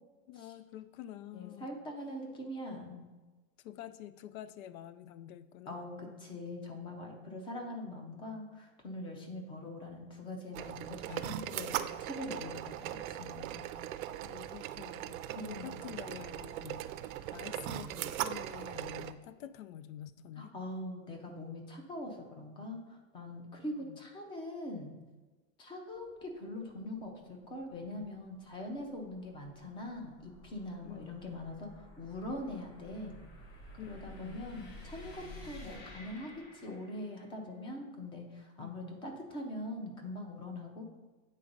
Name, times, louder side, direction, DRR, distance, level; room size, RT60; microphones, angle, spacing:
voice 1, 0.3-1.8 3.6-5.9 11.0-11.4 13.6-13.7 14.2-20.5 23.9-24.0 30.8-31.2 33.8-34.4 38.6-38.9, left 11 dB, 80° left, 14 dB, 0.6 m, -48 dB
voice 2, 1.3-3.1 5.7-13.7 15.3-15.8 20.4-25.0 25.6-33.2 33.8-40.8, left 1 dB, 15° left, 3 dB, 0.5 m, -43 dB
sound 1, 10.5-19.1, right 12 dB, 80° right, 0.6 m, -39 dB
sound 2, 25.9-37.3, left 1 dB, 40° left, 1.9 m, -53 dB
8.4 x 3.9 x 5.2 m, 1.2 s
supercardioid pair, 170°, 41 cm